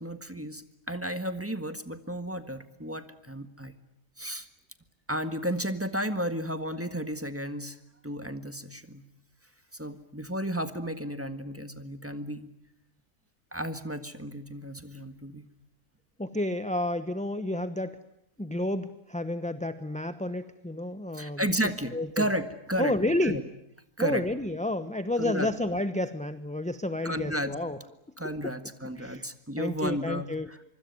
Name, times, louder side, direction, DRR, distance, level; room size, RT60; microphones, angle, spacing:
voice 1, 0.0-3.7 4.2-4.5 5.1-7.8 8.0-9.0 9.7-12.5 13.5-15.4 21.1-23.0 23.2-23.4 24.0-24.2 25.2-25.5 27.0-27.5 28.2-30.6, equal, 10° right, 9 dB, 1.5 m, -33 dB
voice 2, 16.2-18.0 18.4-21.4 21.9-22.2 22.8-23.4 24.0-27.8 29.0-29.3 29.6-30.5, left 1 dB, 5° left, 10 dB, 0.7 m, -30 dB
25.0 x 24.5 x 9.5 m, 0.79 s
omnidirectional pair, 1.6 m